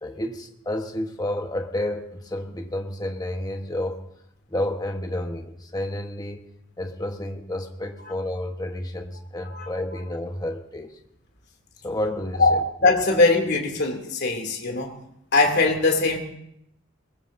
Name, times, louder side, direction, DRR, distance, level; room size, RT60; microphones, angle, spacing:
voice 1, 0.0-4.0 4.5-6.5 6.8-11.0 11.8-12.6, left 1 dB, 20° left, 4 dB, 1.2 m, -30 dB
voice 2, 12.4-14.9 15.3-16.2, left 3 dB, 50° left, 2 dB, 2.8 m, -21 dB
22.5 x 20.5 x 2.7 m, 0.75 s
head